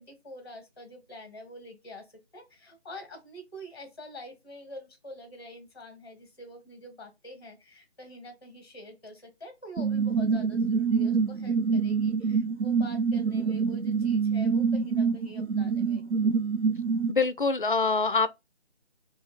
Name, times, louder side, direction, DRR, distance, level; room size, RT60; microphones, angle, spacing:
voice 1, 0.0-16.0, left 1 dB, 20° left, 1.2 m, -46 dB
sound 1, 9.8-17.1, right 5 dB, 75° right, 0.5 m, -26 dB
voice 2, 17.1-18.3, left 4 dB, 50° left, 0.4 m, -24 dB
3.5 x 2.7 x 3.0 m
figure-of-eight pair, 165°, 34 cm